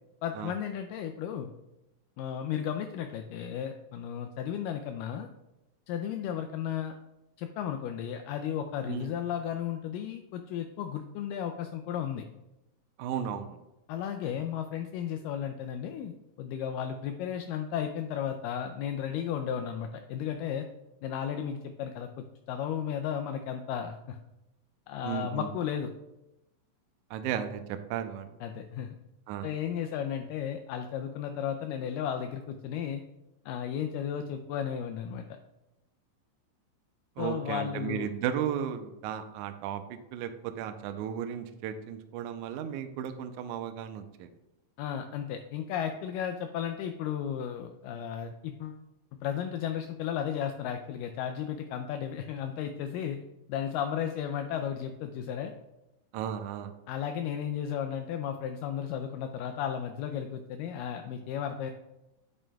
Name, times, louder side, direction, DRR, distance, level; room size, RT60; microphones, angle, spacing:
voice 1, 0.2-1.5 2.2-5.3 5.9-7.0 7.4-12.3 13.9-16.1 16.4-20.7 21.0-24.2 24.9-25.9 28.4-28.9 29.4-33.0 33.5-35.4 37.2-38.1 44.8-48.8 49.2-53.2 53.5-55.5 56.9-61.7, left 9 dB, 80° left, 6 dB, 2.1 m, -34 dB
voice 2, 13.0-13.6 25.0-25.5 27.1-28.3 29.3-29.5 37.2-44.3 56.1-56.7, right 9 dB, 85° right, 7 dB, 1.8 m, -35 dB
9.1 x 8.6 x 2.3 m, 0.93 s
omnidirectional pair, 4.0 m